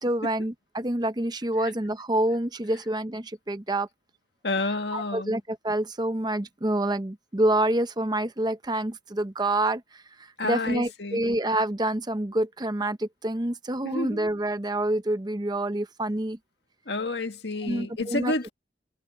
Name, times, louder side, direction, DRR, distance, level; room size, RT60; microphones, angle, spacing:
voice 1, 0.0-3.9 4.9-10.0 10.4-16.4 17.6-18.5, right 1 dB, 25° right, 0.8 m, -27 dB
voice 2, 4.4-5.3 10.4-11.2 13.8-14.2 16.9-18.5, left 2 dB, 70° left, 1.8 m, -29 dB
head